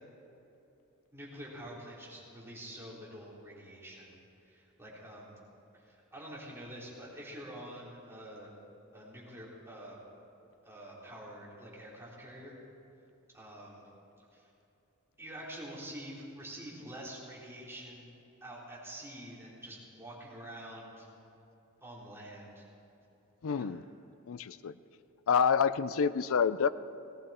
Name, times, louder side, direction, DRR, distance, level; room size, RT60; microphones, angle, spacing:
voice 1, 1.1-4.2 4.4-5.3 5.7-8.5 8.9-10.0 10.6-12.6 13.3-13.8 14.3-14.5 15.2-18.1 18.4-21.1 21.8-22.7 23.5-23.7, right 1 dB, 10° right, -6 dB, 3.8 m, -47 dB
voice 2, 23.4-23.8 24.3-24.7 25.3-26.7, left 6 dB, 65° left, 15 dB, 0.5 m, -28 dB
18.5 x 17.0 x 4.4 m, 3.0 s
head